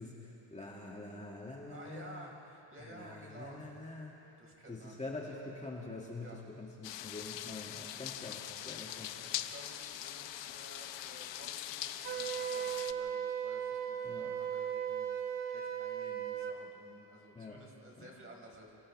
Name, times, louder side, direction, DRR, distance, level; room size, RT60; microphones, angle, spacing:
voice 1, 0.0-2.3 2.8-4.3 4.7-9.1 14.0-14.3 17.3-17.6 18.0-18.1, left 2 dB, 15° left, -3 dB, 2.0 m, -45 dB
voice 2, 1.7-3.7 4.4-5.0 6.2-6.4 8.7-18.7, right 1 dB, 30° right, -1 dB, 4.5 m, -54 dB
sound 1, 6.8-12.9, left 12 dB, 75° left, 0.8 m, -42 dB
Wind instrument woodwind instrument, 12.0-16.6, right 9 dB, 70° right, 1.3 m, -37 dB
28.5 x 28.5 x 3.3 m, 3.0 s
cardioid pair, 120°, 44 cm